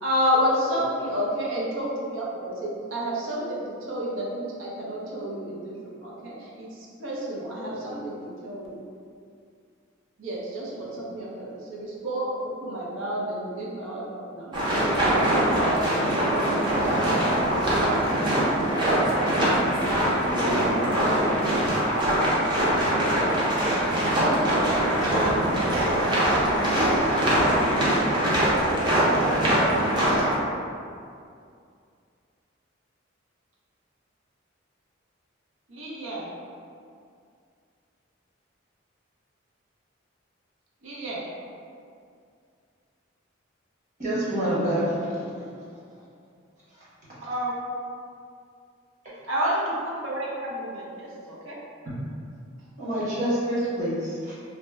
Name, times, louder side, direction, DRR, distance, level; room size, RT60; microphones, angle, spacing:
voice 1, 0.0-2.5 2.9-5.7 6.0-6.7 7.0-8.2 8.4-8.8 10.2-14.9 35.7-36.3 40.8-41.2 47.2-47.6 49.3-51.6, equal, 80° right, -5 dB, 0.6 m, -30 dB
voice 2, 7.6-8.2 10.7-11.1 17.6-18.7 20.1-21.4, equal, 25° left, -6 dB, 0.5 m, -37 dB
sound 1, 14.5-30.4, right 1 dB, 25° right, 0.6 m, -22 dB
voice 3, 44.0-45.3 45.6-45.7 46.7-46.8 52.8-54.3, right 1 dB, 40° right, -10 dB, 1.1 m, -27 dB
2.7 x 2.0 x 3.4 m, 2.3 s
head